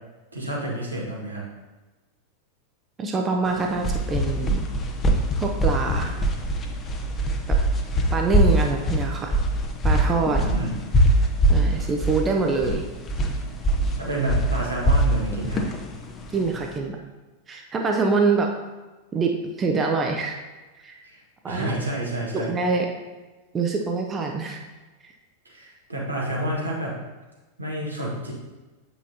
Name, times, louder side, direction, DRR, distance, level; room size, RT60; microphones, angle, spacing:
voice 1, 0.3-1.5 10.5-10.8 14.0-15.6 21.0-22.5 25.4-27.0 27.6-28.3, right 1 dB, 80° right, -4 dB, 1.6 m, -29 dB
voice 2, 3.0-4.7 5.4-6.1 7.5-7.6 8.1-9.3 9.8-10.5 11.5-12.9 16.3-17.0 17.5-18.5 19.1-20.4 20.8-21.0 21.4-21.7 22.3-22.9 23.5-24.6 25.0-25.1, right 4 dB, 20° right, 2 dB, 0.6 m, -25 dB
sound 1, 3.5-16.7, right 1 dB, 25° left, 0.7 m, -22 dB
7.4 x 5.5 x 2.8 m, 1.2 s
figure-of-eight pair, 90°, 0 cm